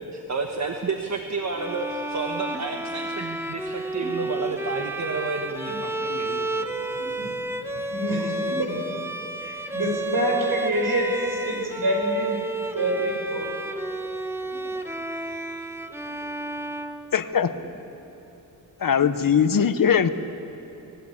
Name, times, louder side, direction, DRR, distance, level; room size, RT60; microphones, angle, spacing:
voice 1, 0.1-6.9, right 4 dB, 45° right, 3 dB, 1.4 m, -31 dB
Bowed string instrument, 1.5-17.6, right 2 dB, 5° right, 1.1 m, -31 dB
voice 2, 6.9-7.3 7.7-8.8 9.4-12.4 12.7-13.5 14.4-14.6 17.4-17.5 18.9-19.1 19.4-19.7, right 1 dB, 65° right, 0 dB, 6.8 m, -27 dB
voice 3, 17.1-17.5 18.8-20.1, left 7 dB, 60° left, 11 dB, 0.9 m, -20 dB
29.0 x 19.5 x 8.4 m, 3.0 s
wide cardioid pair, 150°, 37 cm